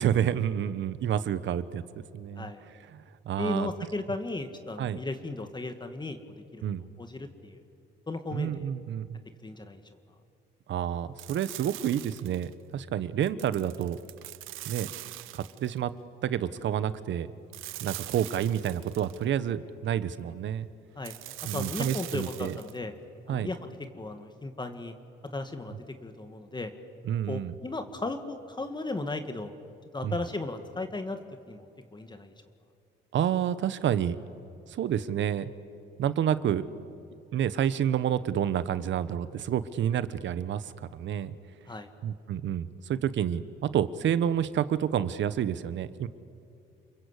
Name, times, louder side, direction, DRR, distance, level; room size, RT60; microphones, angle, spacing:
voice 1, 0.0-1.8 2.1-2.5 2.9-3.7 4.8-5.0 6.6-6.9 8.3-9.2 10.7-14.0 14.7-14.9 15.3-15.9 16.2-17.3 17.8-20.7 21.4-22.6 23.3-23.5 27.1-27.5 30.0-30.2 33.1-34.2 34.7-35.5 36.0-36.7 37.3-41.3 42.0-46.1, right 9 dB, 70° right, 14 dB, 1.1 m, -29 dB
voice 2, 3.4-6.6 7.0-7.6 8.1-8.7 9.4-9.8 21.0-21.1 21.5-22.9 23.3-23.7 24.0-24.9 25.3-25.8 26.0-26.7 27.3-29.5 29.9-31.2 31.5-32.3 41.7-41.9, left 2 dB, 20° left, 7 dB, 1.8 m, -36 dB
sound 1, 11.2-12.5 13.2-15.8 17.5-19.2 21.0-22.8, right 16 dB, 90° right, 0.6 m, -42 dB
30.0 x 22.0 x 8.2 m, 2.5 s
cardioid pair, 90°, 20 cm